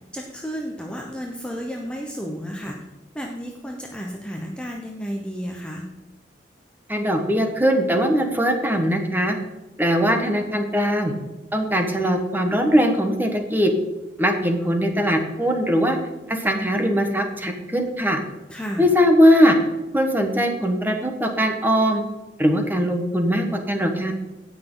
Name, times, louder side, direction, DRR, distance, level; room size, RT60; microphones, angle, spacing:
voice 1, 0.1-2.8 3.1-5.9 18.5-18.9, equal, 5° left, 0 dB, 0.9 m, -32 dB
voice 2, 6.9-9.3 9.8-11.1 11.5-13.7 14.2-16.0 16.3-18.2 18.8-19.5 19.9-22.0 22.4-24.1, equal, 10° right, 4 dB, 1.3 m, -20 dB
17.0 x 6.2 x 3.9 m, 1.1 s
head